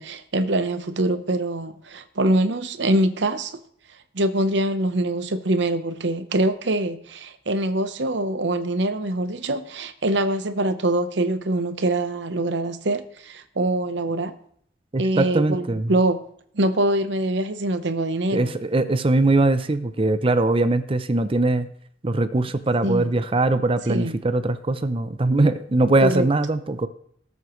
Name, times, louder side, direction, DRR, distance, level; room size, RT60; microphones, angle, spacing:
voice 1, 0.0-3.6 4.1-14.3 15.0-16.2 16.5-18.5 22.8-23.1 23.9-24.1 26.0-26.3, right 1 dB, 70° right, 0.9 m, -24 dB
voice 2, 14.9-15.9 18.3-21.7 22.0-26.9, right 2 dB, 30° right, 0.6 m, -21 dB
18.5 x 8.1 x 3.1 m
head